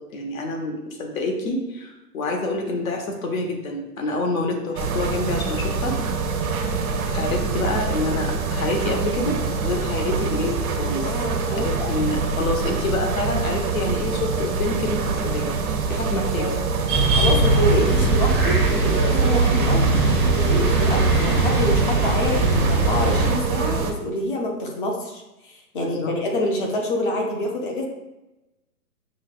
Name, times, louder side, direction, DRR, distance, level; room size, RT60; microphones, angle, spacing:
voice 1, 0.0-6.0 6.3-6.4 7.1-11.1 11.5-15.5 15.9-16.5 25.8-26.1, left 2 dB, 60° left, 2 dB, 1.0 m, -27 dB
sound 1, 4.8-23.9, right 4 dB, 65° right, 0.7 m, -25 dB
voice 2, 11.0-11.9 16.4-16.6 17.2-27.9, left 1 dB, 35° left, 1 dB, 0.6 m, -27 dB
sound 2, 16.9-23.3, right 2 dB, 15° right, 0.6 m, -20 dB
5.8 x 2.2 x 2.4 m, 1.0 s
hypercardioid pair, 150°, 47 cm